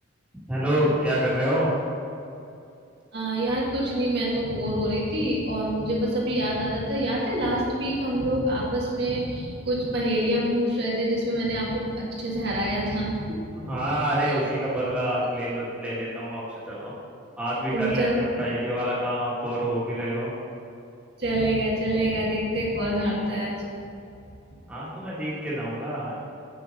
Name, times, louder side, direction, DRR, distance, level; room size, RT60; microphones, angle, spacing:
voice 1, 0.5-1.7 13.6-16.9 17.4-20.3 24.7-26.2, equal, 5° right, -9 dB, 1.9 m, -27 dB
voice 2, 3.1-13.7 14.2-14.4 17.7-18.1 21.2-23.5, right 1 dB, 50° right, -5 dB, 1.7 m, -26 dB
8.0 x 7.1 x 5.3 m, 2.6 s
head